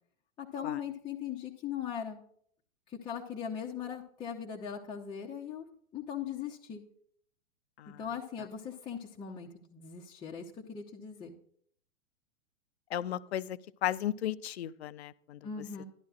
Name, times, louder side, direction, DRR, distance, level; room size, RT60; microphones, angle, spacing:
voice 1, 0.4-2.2 2.9-5.7 5.9-6.8 8.0-11.3 15.4-15.8, left 8 dB, 10° left, -2 dB, 0.6 m, -39 dB
voice 2, 12.9-15.4, left 11 dB, 55° left, 16 dB, 0.6 m, -35 dB
11.5 x 11.5 x 2.4 m, 0.63 s
figure-of-eight pair, 110°, 38 cm